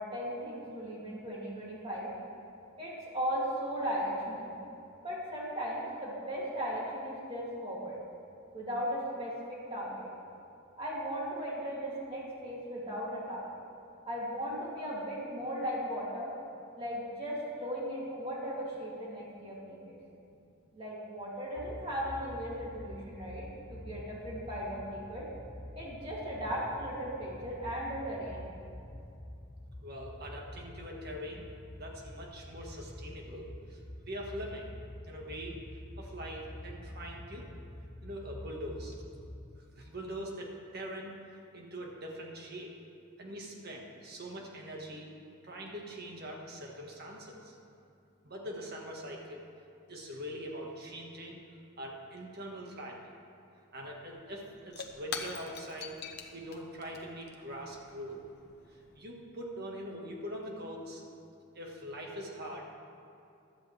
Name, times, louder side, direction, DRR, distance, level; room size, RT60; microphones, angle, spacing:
voice 1, 0.0-2.1 2.8-4.5 5.0-8.0 8.5-10.1 10.8-13.6 14.1-16.3 16.7-20.0 20.7-25.3 25.7-28.5, equal, 25° right, -6 dB, 3.0 m, -37 dB
sound 1, 21.6-39.6, left 1 dB, 15° left, 0.5 m, -47 dB
voice 2, 29.8-31.5 31.8-33.8 34.1-34.7 35.1-35.6 36.0-37.5 38.0-39.0 39.7-41.1 41.5-42.7 43.2-45.1 45.4-47.5 48.2-49.5 49.9-51.4 51.8-53.1 53.7-56.0 56.3-58.2 59.0-61.0 61.6-62.7, equal, 45° right, 0 dB, 1.7 m, -42 dB
Shatter / Crushing, 53.8-53.9 54.1-59.0, left 6 dB, 50° left, 0.9 m, -45 dB
15.5 x 12.5 x 3.5 m, 2.6 s
head